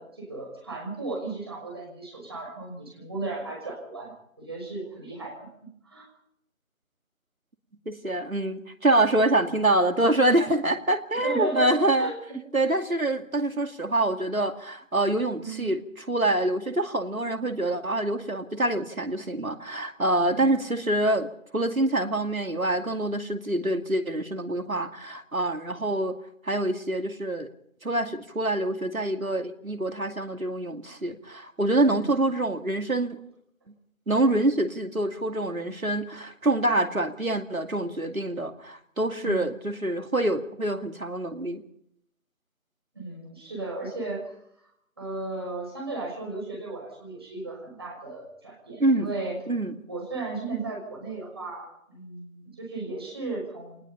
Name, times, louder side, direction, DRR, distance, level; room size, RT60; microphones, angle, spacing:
voice 1, 0.0-4.1 4.4-5.5 5.8-6.1 11.2-12.2 12.6-12.7 15.4-15.7 20.3-20.6 31.9-32.1 39.2-39.5 42.9-44.3 45.0-49.4 49.9-53.8, right 3 dB, 20° right, -2 dB, 5.8 m, -35 dB
voice 2, 7.9-12.1 12.5-21.3 21.5-26.2 26.4-27.5 27.8-33.2 34.1-41.6 48.8-49.1 49.5-49.7, right 1 dB, 80° right, 7 dB, 2.5 m, -26 dB
26.0 x 19.5 x 5.7 m, 0.73 s
figure-of-eight pair, 170°, 41 cm